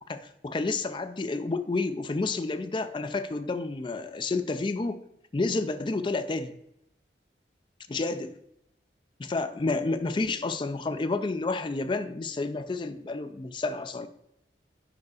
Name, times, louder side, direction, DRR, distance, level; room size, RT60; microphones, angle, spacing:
voice 1, 0.1-5.0 5.3-6.6 7.9-8.3 9.2-14.1, left 3 dB, 25° left, 10 dB, 0.4 m, -30 dB
4.8 x 4.7 x 4.8 m, 0.79 s
head